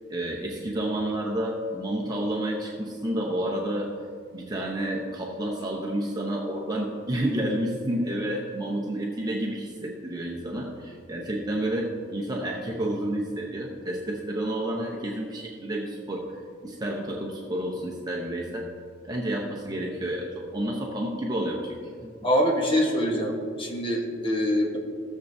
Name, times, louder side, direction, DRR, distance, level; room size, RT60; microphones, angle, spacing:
voice 1, 0.1-3.9 4.3-16.4 16.6-18.7 19.0-22.1, right 1 dB, 20° right, -2 dB, 0.8 m, -30 dB
voice 2, 22.2-24.8, equal, 25° left, 0 dB, 1.2 m, -24 dB
17.0 x 7.2 x 2.7 m, 2.2 s
head